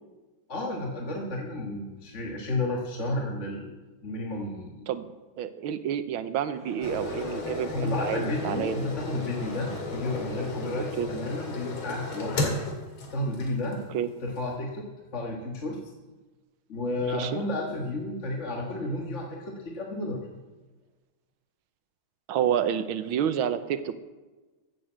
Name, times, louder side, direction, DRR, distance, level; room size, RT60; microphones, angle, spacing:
voice 1, 0.5-4.9 7.7-12.6 13.1-13.8 14.2-15.9 16.7-20.2, left 2 dB, 40° left, 0 dB, 1.7 m, -32 dB
voice 2, 4.9-8.9 11.0-11.1 13.9-14.1 17.1-17.4 22.3-24.0, right 9 dB, 85° right, 11 dB, 1.6 m, -29 dB
sound 1, 6.5-11.7, left 1 dB, 60° left, 4.7 m, -49 dB
sound 2, 6.8-13.8 14.4-14.5, left 3 dB, 80° left, 2.9 m, -34 dB
14.5 x 8.0 x 7.5 m, 1.2 s
omnidirectional pair, 2.2 m